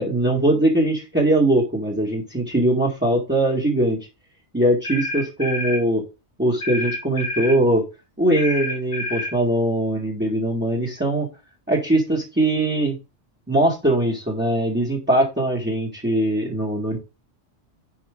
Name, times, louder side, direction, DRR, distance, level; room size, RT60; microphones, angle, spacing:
voice 1, 0.0-4.0 4.5-6.0 6.4-7.8 8.2-11.3 11.7-12.9 13.5-17.0, right 1 dB, 10° right, -3 dB, 1.9 m, -21 dB
sound 1, 4.8-5.8 6.6-7.6 8.4-9.4, left 2 dB, 50° left, 1.9 m, -28 dB
10.0 x 5.0 x 3.8 m, 0.27 s
omnidirectional pair, 1.2 m